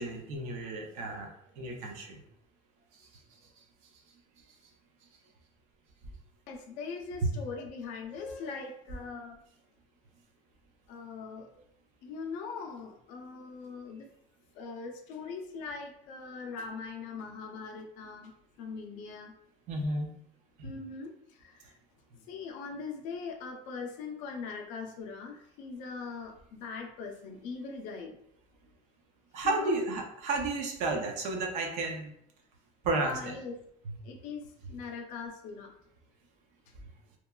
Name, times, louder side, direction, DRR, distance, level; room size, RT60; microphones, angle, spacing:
voice 1, 0.0-2.2 3.0-3.1 7.2-7.3 19.7-20.1 20.6-20.7 29.3-32.1 32.8-33.3, right 2 dB, 50° right, 2 dB, 0.5 m, -32 dB
voice 2, 6.5-9.4 10.9-11.5 12.0-14.1 14.5-18.3 18.6-19.3 20.6-21.8 22.2-28.2 29.4-29.8 33.0-33.6 34.0-35.7, left 4 dB, 60° left, 3 dB, 0.4 m, -41 dB
2.9 x 2.2 x 2.2 m, 0.71 s
cardioid pair, 175°, 15 cm